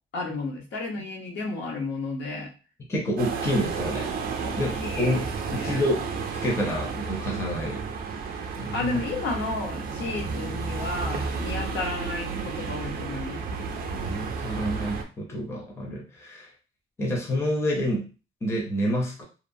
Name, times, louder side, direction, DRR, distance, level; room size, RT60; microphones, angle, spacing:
voice 1, 0.1-2.5 4.4-5.8 8.7-13.4, left 3 dB, 60° left, 0 dB, 0.8 m, -32 dB
voice 2, 2.9-4.1 4.6-5.3 5.5-6.1 6.4-7.8 8.6-9.0 13.8-16.5 17.0-18.1 18.4-19.2, equal, 10° left, -2 dB, 0.5 m, -28 dB
sound 1, 3.2-15.0, right 5 dB, 45° right, 0.4 m, -32 dB
2.8 x 2.0 x 2.6 m, 0.34 s
cardioid pair, 170°, 21 cm